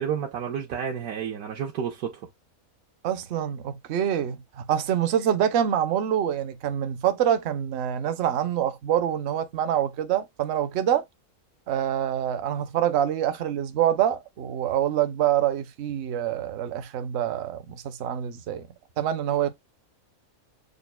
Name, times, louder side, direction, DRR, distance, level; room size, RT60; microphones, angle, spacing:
voice 1, 0.0-2.3, right 8 dB, 75° right, 1.3 m, -30 dB
voice 2, 3.0-11.0 11.7-18.7 19.0-19.5, right 10 dB, 60° right, 0.7 m, -26 dB
6.5 x 2.4 x 2.2 m
omnidirectional pair, 1.6 m